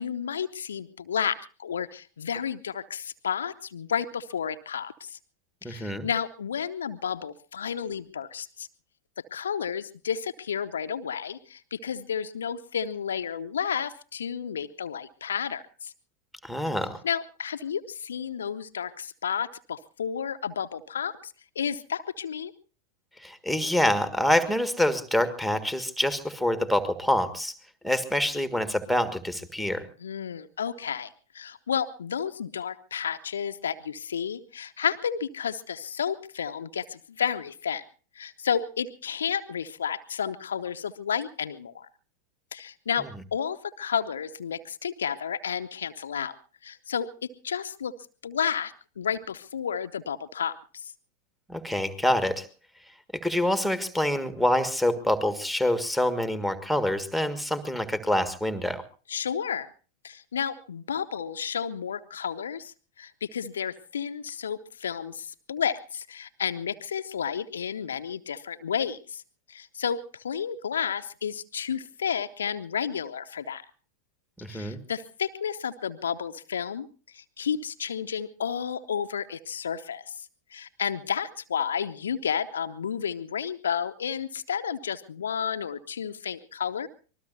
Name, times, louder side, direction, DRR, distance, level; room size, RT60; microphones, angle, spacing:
voice 1, 0.0-5.2 5.6-8.7 9.2-15.9 17.0-22.5 30.0-37.8 38.1-41.9 42.5-46.3 46.6-47.1 47.4-47.9 48.2-50.9 59.1-59.7 60.0-69.2 69.5-73.6 74.5-76.9 77.1-86.9, left 7 dB, 65° left, 10 dB, 0.8 m, -31 dB
voice 2, 5.6-6.1 16.4-17.0 23.2-27.5 27.8-29.8 51.5-52.5 53.1-58.8 74.4-74.8, left 1 dB, ahead, 11 dB, 1.7 m, -26 dB
25.5 x 20.5 x 2.7 m, 0.39 s
figure-of-eight pair, 90°, 0 cm